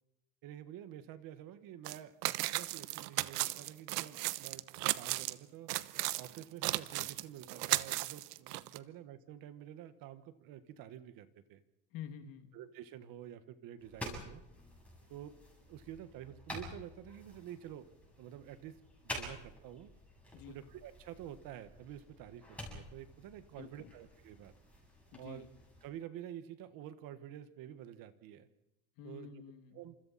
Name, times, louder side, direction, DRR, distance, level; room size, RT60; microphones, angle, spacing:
voice 1, 0.4-5.7 6.2-11.6 12.5-14.4 15.1-15.3 15.7-17.9 18.2-18.8 19.0-19.9 20.5-24.5 25.2-25.5 25.8-28.5 29.0-29.3 29.7-29.9, right 11 dB, 45° right, 11 dB, 1.6 m, -49 dB
sound 1, 1.8-2.0 2.2-5.3 5.7-8.8, right 19 dB, 90° right, 1.1 m, -35 dB
voice 2, 11.9-12.5 20.3-20.6 23.6-23.9 25.1-25.5 29.0-29.8, left 8 dB, 45° left, 7 dB, 2.5 m, -49 dB
sound 2, 13.8-25.9, left 1 dB, 5° left, 7.6 m, -50 dB
29.5 x 27.0 x 4.3 m, 0.89 s
cardioid pair, 155°, 45 cm